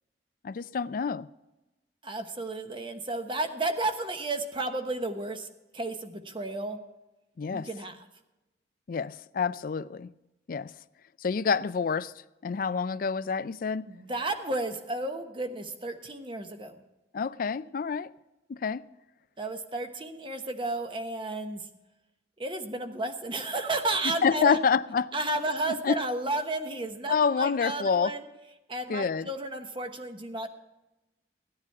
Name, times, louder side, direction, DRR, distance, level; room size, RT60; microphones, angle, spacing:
voice 1, 0.4-1.3 7.4-7.7 8.9-10.1 10.5-10.7 11.2-12.1 12.4-13.9 17.1-18.1 18.5-18.9 24.0-25.1 25.7-26.0 27.1-28.1 28.9-29.3, left 5 dB, 50° left, 0.4 m, -28 dB
voice 2, 2.0-5.5 5.7-6.8 7.5-8.0 13.9-16.8 19.4-21.7 22.4-24.6 25.1-28.3 28.7-30.5, right 2 dB, 30° right, 1.0 m, -32 dB
16.0 x 9.9 x 4.7 m
head